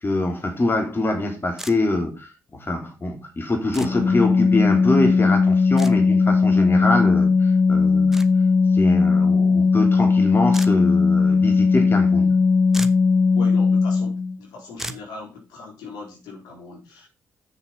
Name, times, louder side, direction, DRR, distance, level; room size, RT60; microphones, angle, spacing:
voice 1, 0.0-8.3 8.7-12.3, left 2 dB, 30° left, 3.1 m, -24 dB
sound 1, 1.6-1.8 3.7-3.9 5.8-5.9 8.1-8.3 10.5-10.7 12.4-12.5 12.7-13.1 14.8-15.1, right 1 dB, 5° right, 1.2 m, -34 dB
Organ, 3.8-14.4, left 4 dB, 60° left, 0.8 m, -18 dB
voice 2, 13.3-17.1, left 4 dB, 75° left, 3.9 m, -39 dB
7.2 x 6.8 x 5.7 m
hypercardioid pair, 45°, 7 cm